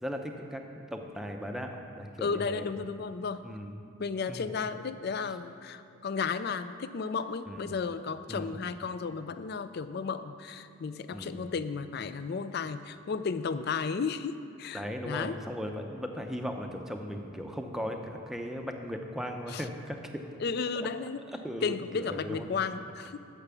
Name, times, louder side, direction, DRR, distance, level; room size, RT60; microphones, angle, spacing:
voice 1, 0.0-2.7 3.4-3.7 4.3-4.5 7.5-7.8 8.3-8.6 11.1-11.4 14.7-20.2 20.8-20.9 21.3-22.5, equal, ahead, 3 dB, 0.5 m, -37 dB
voice 2, 2.2-3.5 4.0-15.4 19.5-19.6 20.4-21.3 21.6-23.2, left 5 dB, 50° left, 12 dB, 0.4 m, -33 dB
10.0 x 5.9 x 7.0 m, 2.5 s
head